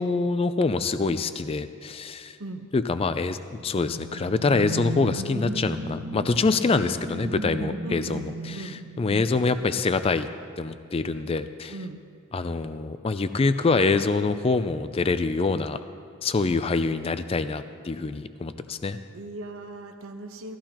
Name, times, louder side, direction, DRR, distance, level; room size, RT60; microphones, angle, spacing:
voice 1, 0.0-2.4 2.7-8.2 8.5-8.7 9.0-10.3 10.6-11.7 12.3-15.8 16.2-19.0, left 3 dB, 25° left, 11 dB, 0.3 m, -25 dB
sound 1, 3.3-9.9, right 1 dB, 45° right, 1.1 m, -35 dB
voice 2, 7.8-8.3 8.5-8.8 9.1-9.3 11.7-12.0 19.1-20.6, right 2 dB, 70° right, 5 dB, 1.0 m, -37 dB
18.0 x 14.0 x 2.9 m, 2.4 s
head